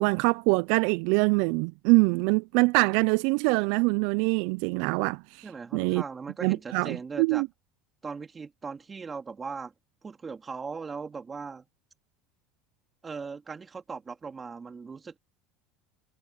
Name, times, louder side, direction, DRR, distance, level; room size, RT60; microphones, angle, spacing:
voice 1, 0.0-5.5 5.7-6.0 6.4-7.5, right 28 dB, 70° right, 0.3 m, -24 dB
voice 2, 5.4-7.4 8.0-9.7 10.0-11.7 13.0-15.2, right 5 dB, 25° right, 2.8 m, -39 dB
supercardioid pair, 105°, 0 cm